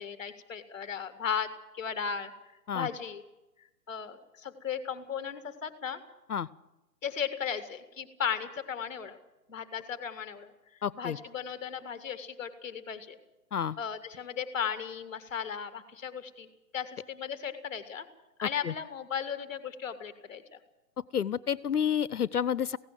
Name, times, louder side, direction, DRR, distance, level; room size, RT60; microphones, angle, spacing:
voice 1, 0.0-2.3 2.7-3.2 3.9-6.0 7.0-9.2 9.5-10.5 10.9-13.2 13.8-18.1 18.4-20.6, left 7 dB, 10° left, 8 dB, 1.0 m, -36 dB
voice 2, 10.8-11.2 13.5-13.8 18.4-18.7 21.1-22.8, left 8 dB, 60° left, 18 dB, 0.7 m, -30 dB
17.5 x 16.5 x 9.2 m, 0.98 s
hypercardioid pair, 175°, 50 cm